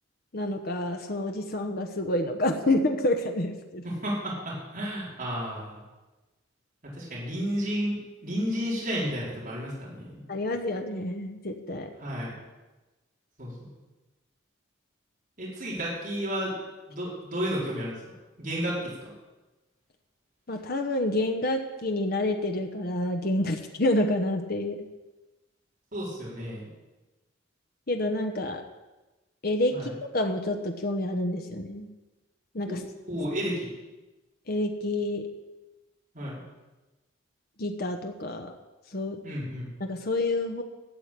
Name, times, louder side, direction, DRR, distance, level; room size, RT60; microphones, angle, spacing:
voice 1, 0.3-3.8 10.3-11.9 20.5-24.9 27.9-28.6 29.4-29.8 30.1-31.9 32.5-32.8 34.5-35.2 37.6-38.5 38.9-39.2 39.8-40.6, left 1 dB, 50° left, 4 dB, 1.0 m, -28 dB
voice 2, 3.8-5.8 6.8-10.2 12.0-12.4 13.4-13.7 15.4-16.5 16.9-18.0 18.4-19.1 25.9-26.7 29.7-29.9 32.7-33.7 36.1-36.4 39.2-39.7, equal, 40° right, -7 dB, 4.8 m, -32 dB
13.0 x 7.7 x 8.3 m, 1.1 s
head